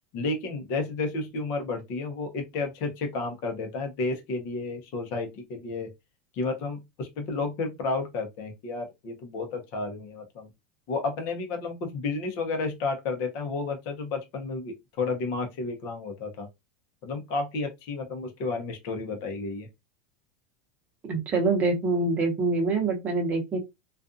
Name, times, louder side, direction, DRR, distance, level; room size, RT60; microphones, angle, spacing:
voice 1, 0.1-5.9 6.3-10.5 10.9-16.5 17.0-19.7, left 3 dB, 50° left, 0.8 m, -31 dB
voice 2, 21.0-23.6, right 3 dB, 30° right, 0.8 m, -25 dB
2.5 x 2.3 x 2.5 m
supercardioid pair, 145°, 6 cm